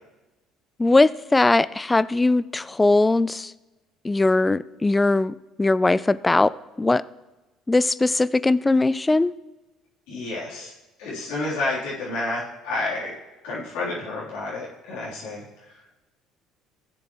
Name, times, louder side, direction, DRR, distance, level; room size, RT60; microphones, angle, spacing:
voice 1, 0.8-3.5 4.0-6.5 6.8-7.0 7.7-9.3, left 2 dB, 15° left, 18 dB, 0.4 m, -20 dB
voice 2, 10.1-10.7 11.0-13.2 13.4-15.9, left 2 dB, 80° left, -7 dB, 3.3 m, -30 dB
16.5 x 7.7 x 3.0 m, 1.1 s
hypercardioid pair, 70°, 0 cm